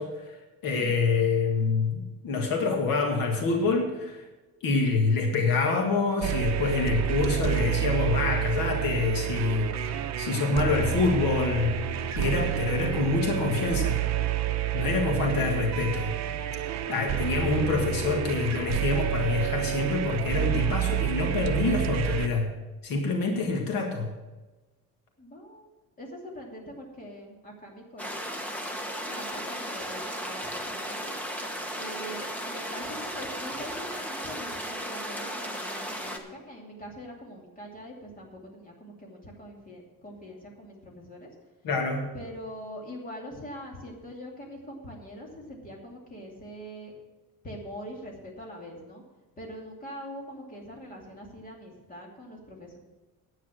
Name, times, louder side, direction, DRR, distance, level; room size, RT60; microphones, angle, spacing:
voice 1, 0.0-4.3 4.6-11.9 12.2-14.0 14.7-16.1 16.9-22.5 22.8-24.1 41.6-42.1, left 3 dB, 70° left, 2 dB, 1.9 m, -26 dB
sound 1, 6.2-22.3, right 10 dB, 50° right, 0.8 m, -29 dB
voice 2, 10.4-11.2 15.0-15.3 17.0-17.4 25.2-25.7 26.0-28.4 29.1-31.1 31.8-41.3 42.1-46.9 47.4-49.0 49.4-52.8, equal, 25° left, -1 dB, 2.6 m, -43 dB
sound 2, 28.0-36.2, equal, 5° left, 1.1 m, -35 dB
10.0 x 8.8 x 6.4 m, 1.2 s
cardioid pair, 155°, 36 cm